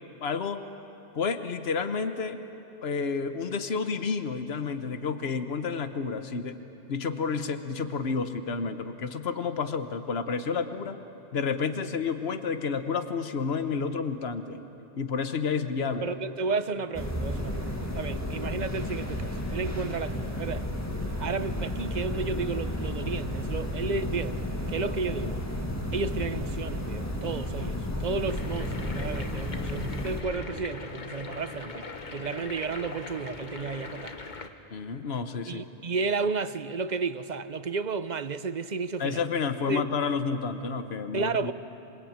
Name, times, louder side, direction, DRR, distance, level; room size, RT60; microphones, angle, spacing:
voice 1, 0.2-0.6 1.1-2.4 2.8-6.6 6.9-11.0 11.3-14.6 15.0-16.2 34.7-35.6 39.0-41.5, left 5 dB, 75° left, 1.3 m, -30 dB
voice 2, 16.0-20.7 21.2-24.4 24.7-25.4 25.9-34.1 35.5-39.2 39.7-39.8 41.1-41.5, right 4 dB, 45° right, 0.8 m, -32 dB
sound 1, 16.9-30.2, left 1 dB, 15° left, 1.8 m, -32 dB
sound 2, 28.3-34.5, left 4 dB, 45° left, 1.4 m, -40 dB
27.0 x 21.5 x 8.8 m
omnidirectional pair, 1.1 m